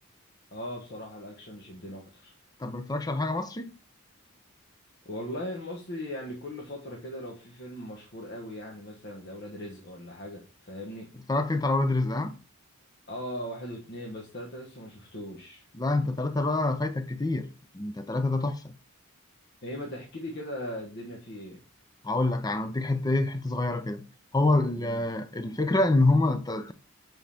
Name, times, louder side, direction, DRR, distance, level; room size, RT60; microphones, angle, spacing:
voice 1, 0.5-2.3 5.0-11.1 13.1-15.6 19.6-21.6 24.8-25.1, left 1 dB, 50° left, 1.1 m, -39 dB
voice 2, 2.6-3.7 11.3-12.4 15.7-18.7 22.0-24.1 24.3-26.7, left 2 dB, 15° left, 0.5 m, -26 dB
7.4 x 3.8 x 3.4 m
head